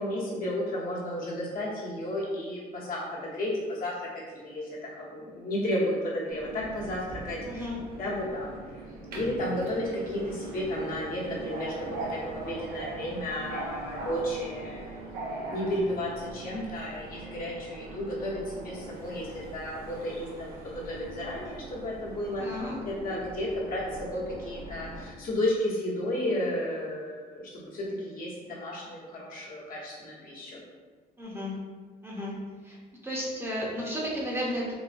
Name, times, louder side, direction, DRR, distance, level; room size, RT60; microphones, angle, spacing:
voice 1, 0.0-7.7 8.0-8.8 9.1-22.6 23.0-30.6, left 1 dB, 55° left, -6 dB, 1.0 m, -33 dB
Subway metro underground, 6.3-25.0, right 2 dB, 65° right, 0.7 m, -41 dB
voice 2, 7.4-7.8 22.4-22.7 31.2-31.5 32.0-32.3 32.6-32.8 33.0-34.7, equal, 15° right, -5 dB, 0.7 m, -33 dB
3.8 x 2.0 x 2.5 m, 1.5 s
cardioid pair, 110°, 17 cm